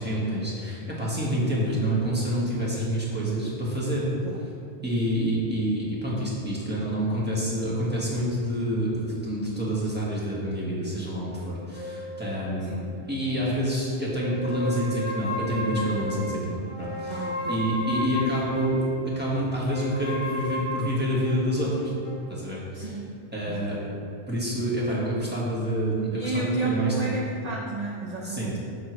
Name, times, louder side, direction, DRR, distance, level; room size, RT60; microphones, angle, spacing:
voice 1, 0.0-4.1 4.8-12.7 13.1-21.9 22.3-22.9 23.3-23.8 24.3-27.1 28.2-28.6, right 1 dB, 10° right, -7 dB, 1.3 m, -27 dB
sound 1, 11.7-13.8 14.1-19.0 19.7-22.3, left 1 dB, 30° left, 0.8 m, -34 dB
voice 2, 17.1-17.6 22.7-23.1 23.5-23.9 26.1-28.6, right 3 dB, 50° right, -2 dB, 0.5 m, -32 dB
6.4 x 6.0 x 3.1 m, 2.7 s
omnidirectional pair, 1.2 m